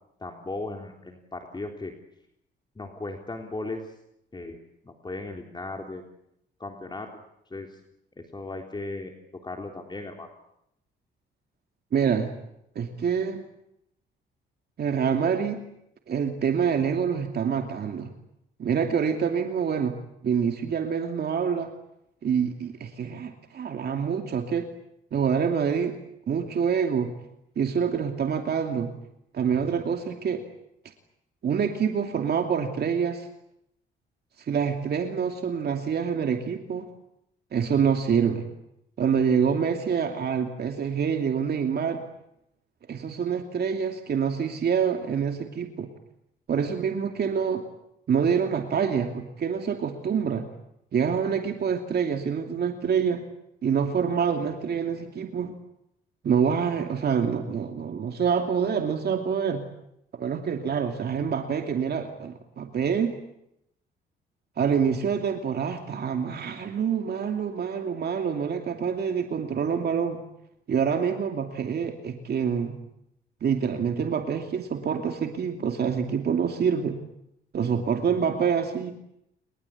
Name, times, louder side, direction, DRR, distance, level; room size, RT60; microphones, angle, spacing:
voice 1, 0.2-1.9 2.8-3.9 4.3-4.6 4.8-6.0 6.6-7.1 7.5-7.8 8.2-9.1 9.4-10.3, left 2 dB, 20° left, 3 dB, 3.6 m, -36 dB
voice 2, 11.9-12.3 12.7-13.4 14.8-15.6 16.1-18.1 18.6-20.0 20.2-21.7 22.2-24.7 25.1-26.0 26.3-27.1 27.6-28.9 29.3-30.4 31.4-33.3 34.5-36.9 37.5-38.4 39.0-42.0 42.9-45.9 46.5-47.6 48.1-50.5 50.9-53.2 53.6-55.5 56.2-59.7 60.1-63.1 64.6-70.2 70.7-72.8 73.4-77.0 77.5-78.9, right 7 dB, 55° right, 5 dB, 2.7 m, -26 dB
29.5 x 21.0 x 8.5 m, 0.79 s
cardioid pair, 90°, 20 cm